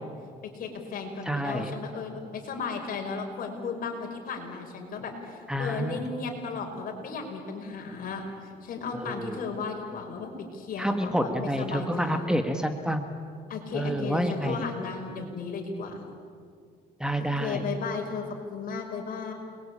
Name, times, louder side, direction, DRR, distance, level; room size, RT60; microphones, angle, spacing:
voice 1, 0.4-12.3 13.5-16.1 17.4-19.3, left 4 dB, 55° left, 3 dB, 5.6 m, -35 dB
voice 2, 1.2-1.7 5.5-6.0 8.9-9.4 10.8-13.1 13.7-14.7 17.0-17.6, equal, 5° right, 6 dB, 1.6 m, -29 dB
29.5 x 21.5 x 8.7 m, 2.2 s
cardioid pair, 110°, 17 cm